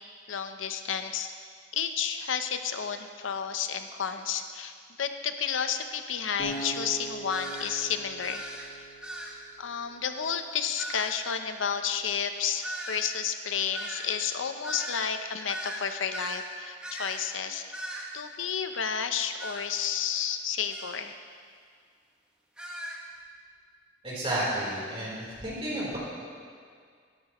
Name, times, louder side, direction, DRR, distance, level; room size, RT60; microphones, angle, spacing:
voice 1, 0.3-1.3 1.7-4.7 5.0-8.4 8.8-8.9 9.6-17.7 18.1-21.1, left 7 dB, 85° left, 8 dB, 0.7 m, -31 dB
Acoustic guitar, 6.4-9.6, right 1 dB, 45° left, 3.4 m, -41 dB
sound 1, 6.5-6.6 7.3-7.8 8.2-8.7 9.0-9.4 10.8-11.2 12.6-16.5 16.8-17.3 17.7-18.1 19.4-19.7 20.7-21.0 22.6-23.0, right 1 dB, 5° right, 1.4 m, -39 dB
voice 2, 24.0-26.0, right 1 dB, 30° right, -7 dB, 3.7 m, -31 dB
17.0 x 13.5 x 3.1 m, 2.1 s
head